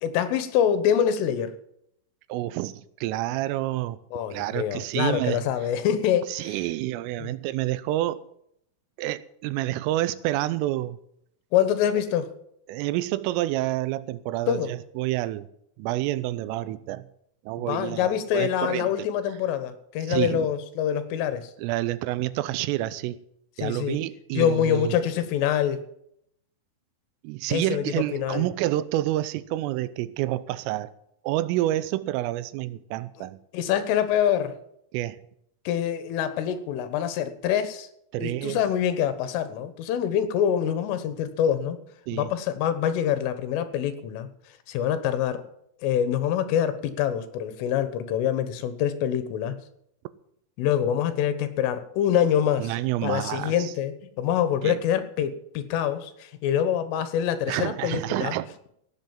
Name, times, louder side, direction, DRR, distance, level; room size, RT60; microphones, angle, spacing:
voice 1, 0.0-1.5 4.1-6.6 7.2-7.3 11.5-12.3 14.5-14.7 17.6-21.5 23.6-24.0 24.3-25.8 27.5-28.5 33.2-33.3 33.5-34.5 35.7-37.9 38.2-41.8 42.1-44.3 44.7-45.4 45.8-49.6 50.6-52.8 53.0-58.4, left 9 dB, 80° left, 3.8 m, -25 dB
voice 2, 2.3-4.0 4.3-5.4 6.3-8.2 9.0-11.0 12.7-15.5 15.8-17.1 17.5-19.1 20.1-20.5 21.6-23.2 23.6-25.0 27.2-30.9 31.2-33.4 34.9-35.2 38.1-38.6 42.1-42.3 52.6-53.7 54.6-54.8 57.5-58.6, right 15 dB, 85° right, 3.4 m, -28 dB
17.5 x 7.9 x 7.4 m
omnidirectional pair, 5.8 m